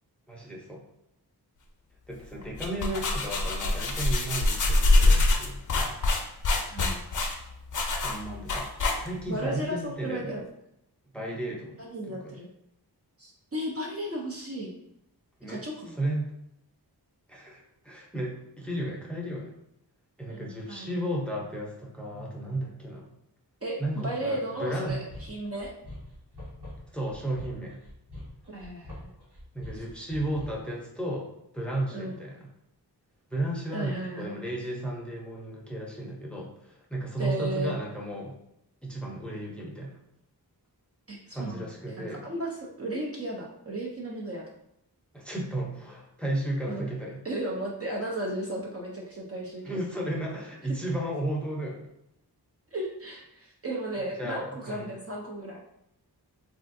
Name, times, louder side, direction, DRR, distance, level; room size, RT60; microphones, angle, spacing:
voice 1, 0.3-0.8 2.1-5.9 7.9-10.3 11.1-11.7 12.1-12.4 15.4-15.6 16.0-16.3 17.3-19.5 20.2-23.1 23.8-25.0 26.9-27.8 29.5-31.3 31.5-32.5 33.3-38.3 38.8-40.0 41.3-42.3 45.1-47.2 49.6-51.9 54.2-54.9, right 1 dB, 5° left, -2 dB, 0.6 m, -34 dB
sound 1, 2.4-9.4, left 2 dB, 50° left, 0.5 m, -25 dB
voice 2, 6.6-7.0 9.3-10.4 11.8-12.5 13.2-14.7 15.5-16.0 20.3-20.9 23.6-25.7 28.5-29.1 31.9-32.2 33.7-34.4 37.2-37.7 41.1-44.5 46.7-46.9 47.2-49.9 52.7-55.6, right 1 dB, 40° right, -2 dB, 0.5 m, -35 dB
sound 2, 25.1-30.7, left 1 dB, 85° right, 1.4 m, -44 dB
3.2 x 2.5 x 2.6 m, 0.80 s
wide cardioid pair, 85°, 39 cm